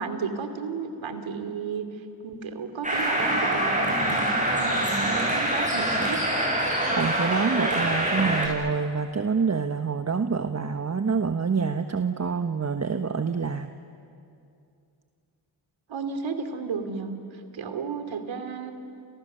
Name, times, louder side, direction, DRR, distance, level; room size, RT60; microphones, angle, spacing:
voice 1, 0.0-1.9 2.2-6.2 15.9-18.7, right 5 dB, 75° right, 7 dB, 2.8 m, -33 dB
sound 1, 2.8-8.5, right 1 dB, 15° right, 7.6 m, -25 dB
voice 2, 7.0-13.7, right 5 dB, 35° right, 8 dB, 1.2 m, -26 dB
29.5 x 29.0 x 6.8 m, 2.5 s
supercardioid pair, 45°, 47 cm